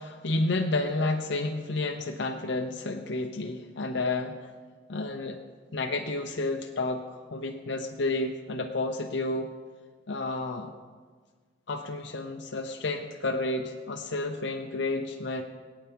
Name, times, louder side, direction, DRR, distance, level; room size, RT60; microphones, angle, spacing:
voice 1, 0.0-4.4 4.9-5.4 5.7-7.0 7.3-9.5 10.1-10.7 11.7-15.4, left 2 dB, 65° left, 3 dB, 0.8 m, -30 dB
22.5 x 9.0 x 3.5 m, 1.5 s
head